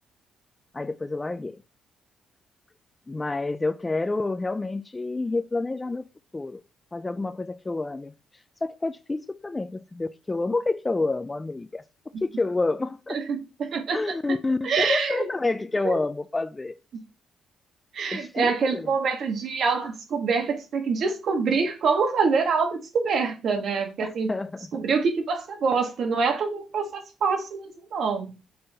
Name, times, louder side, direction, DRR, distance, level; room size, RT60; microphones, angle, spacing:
voice 1, 0.7-1.6 3.1-6.1 6.3-6.6 6.9-8.1 8.6-11.8 12.2-13.2 13.9-16.7 18.1-18.9 24.0-24.7, left 3 dB, 20° left, 0.3 m, -28 dB
voice 2, 13.1-14.0 14.6-15.3 15.8-16.0 16.9-17.0 17.9-24.3 24.7-28.3, right 5 dB, 60° right, 1.2 m, -25 dB
5.4 x 3.3 x 2.8 m
cardioid pair, 90°, 0 cm